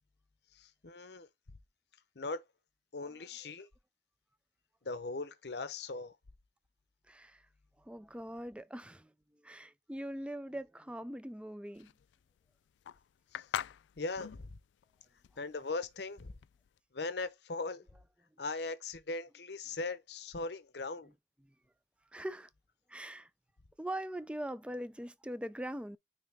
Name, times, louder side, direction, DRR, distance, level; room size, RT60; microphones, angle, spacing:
voice 1, 0.6-1.3 2.2-2.4 2.9-3.7 4.8-6.1 13.3-13.4 14.0-14.5 15.4-16.3 16.9-17.8 18.4-21.1, left 3 dB, 65° left, 0.8 m, -39 dB
voice 2, 7.1-7.5 7.8-11.9 21.4-21.5 22.1-22.5 22.9-23.3 23.8-26.0, right 1 dB, 5° right, 0.4 m, -42 dB
sound 1, 11.7-16.8, left 9 dB, 85° left, 0.3 m, -43 dB
9.4 x 3.3 x 3.4 m
head